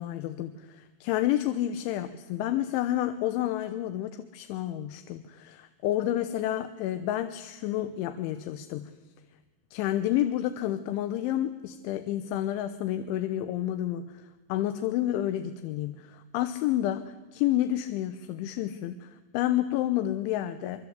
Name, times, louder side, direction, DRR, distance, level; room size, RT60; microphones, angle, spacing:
voice 1, 0.0-8.9 9.7-20.9, left 12 dB, 85° left, 9 dB, 3.4 m, -30 dB
25.0 x 24.5 x 8.1 m, 1.2 s
omnidirectional pair, 5.3 m